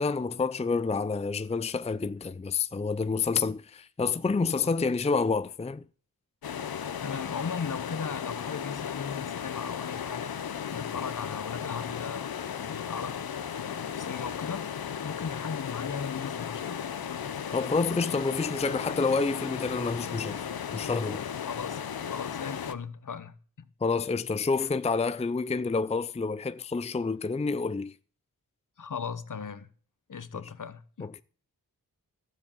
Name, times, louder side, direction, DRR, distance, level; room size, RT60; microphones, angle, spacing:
voice 1, 0.0-5.8 17.5-20.4 20.7-21.2 23.8-27.9 30.3-30.4 31.0-31.2, left 4 dB, 20° left, 0.5 m, -28 dB
sound 1, 6.4-22.7, left 8 dB, 80° left, 0.9 m, -35 dB
voice 2, 7.0-10.3 10.7-14.7 15.0-16.9 21.4-21.8 22.1-23.3 28.8-29.7 30.1-31.1, left 6 dB, 60° left, 1.1 m, -37 dB
12.5 x 7.6 x 7.3 m
wide cardioid pair, 65°, 36 cm